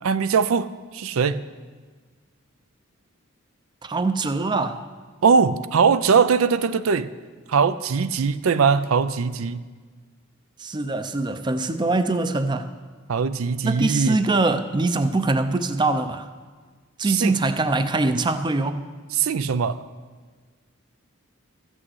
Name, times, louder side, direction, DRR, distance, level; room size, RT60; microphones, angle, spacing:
voice 1, 0.0-0.7 0.9-1.4 5.2-7.1 7.5-9.6 13.1-14.2 17.1-17.3 19.2-19.8, right 5 dB, 80° right, 14 dB, 0.5 m, -20 dB
voice 2, 3.8-4.8 10.6-12.7 13.6-16.3 17.0-18.9, right 2 dB, 20° right, 10 dB, 0.5 m, -23 dB
13.5 x 6.2 x 7.9 m, 1.5 s
head